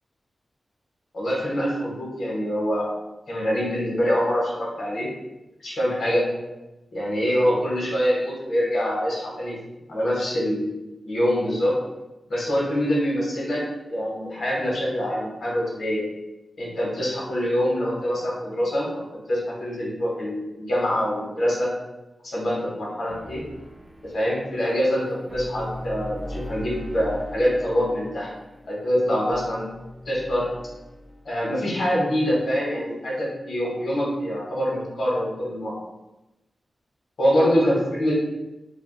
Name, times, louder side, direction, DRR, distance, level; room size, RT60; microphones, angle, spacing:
voice 1, 1.1-2.9 3.3-5.1 5.6-6.2 6.9-9.6 9.9-11.7 12.3-13.6 13.9-16.0 16.6-21.7 22.2-23.4 24.0-28.3 28.7-29.7 30.1-30.5 31.2-35.7 37.2-38.1, equal, 75° left, -5 dB, 0.8 m, -25 dB
sound 1, 23.1-31.3, left 1 dB, 20° right, 0.5 m, -39 dB
2.3 x 2.2 x 3.6 m, 1.0 s
wide cardioid pair, 85°, 0 cm